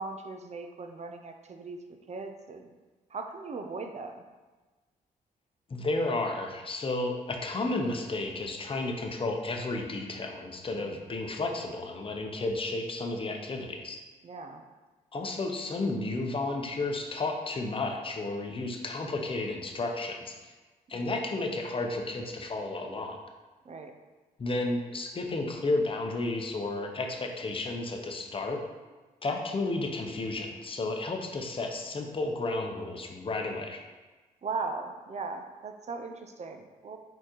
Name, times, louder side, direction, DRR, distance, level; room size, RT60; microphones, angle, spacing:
voice 1, 0.0-2.7 3.1-4.2 10.7-11.0 14.2-14.6 20.9-21.1 23.6-23.9 34.4-37.0, right 4 dB, 45° right, 6 dB, 0.5 m, -39 dB
voice 2, 5.7-14.0 15.1-20.5 20.9-23.2 24.4-28.6 29.2-33.8, left 2 dB, 35° left, 3 dB, 0.7 m, -32 dB
4.2 x 3.8 x 3.0 m, 1.3 s
supercardioid pair, 60°, 16 cm